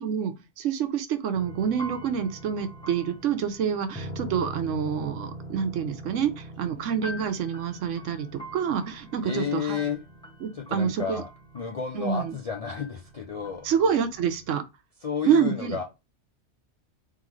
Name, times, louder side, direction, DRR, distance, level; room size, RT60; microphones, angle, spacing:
voice 1, 0.0-9.8 10.4-11.2 11.9-12.4 13.6-14.6 15.2-15.8, right 7 dB, 90° right, 1.0 m, -27 dB
sound 1, 1.3-14.5, right 1 dB, 5° left, 0.8 m, -42 dB
voice 2, 9.2-10.0 10.5-11.3 11.5-13.7 15.0-15.8, left 6 dB, 60° left, 0.3 m, -31 dB
3.8 x 3.1 x 3.0 m
omnidirectional pair, 1.2 m